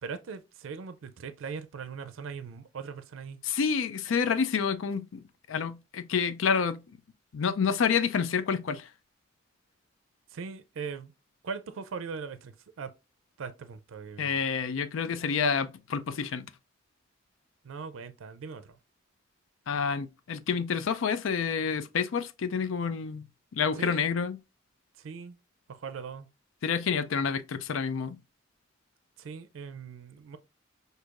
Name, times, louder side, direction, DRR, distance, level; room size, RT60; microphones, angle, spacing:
voice 1, 0.0-3.4 10.3-11.1 11.4-12.9 13.4-14.4 17.6-18.8 23.8-24.1 25.0-25.4 25.7-26.3 29.2-30.4, right 5 dB, 85° right, 0.4 m, -40 dB
voice 2, 3.4-6.8 7.3-8.9 14.2-16.5 19.7-23.3 23.5-24.4 26.6-28.2, left 6 dB, 85° left, 0.4 m, -28 dB
6.2 x 2.7 x 2.4 m
head